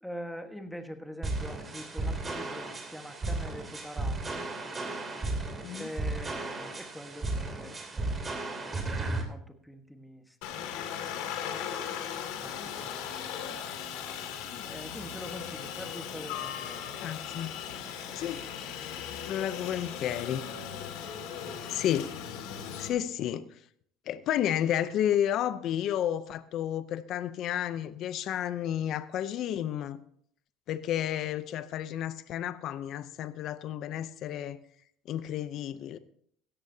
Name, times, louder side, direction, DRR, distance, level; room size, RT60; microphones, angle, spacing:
voice 1, 0.0-4.5 5.7-11.8 12.3-13.6 14.6-17.0 18.1-18.3, equal, ahead, 1.4 m, -45 dB
sound 1, 1.2-9.2, right 2 dB, 20° right, 2.9 m, -34 dB
Aircraft, 10.4-22.9, left 8 dB, 80° left, 2.2 m, -38 dB
voice 2, 17.0-17.5 18.1-18.4 19.3-20.5 21.7-22.5 22.8-23.5 24.1-30.0 30.7-34.6 35.1-36.0, left 11 dB, 55° left, 0.6 m, -31 dB
16.5 x 13.5 x 2.8 m
cardioid pair, 125°, 0 cm